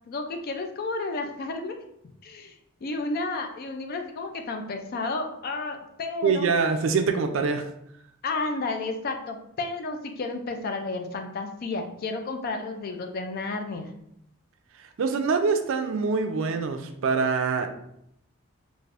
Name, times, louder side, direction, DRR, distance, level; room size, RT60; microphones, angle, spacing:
voice 1, 0.1-1.8 2.2-2.5 2.8-6.5 8.2-13.9, left 3 dB, 45° left, 5 dB, 0.3 m, -32 dB
voice 2, 6.2-7.7 15.0-17.7, right 5 dB, 65° right, 6 dB, 0.4 m, -24 dB
3.3 x 2.5 x 2.4 m, 0.75 s
head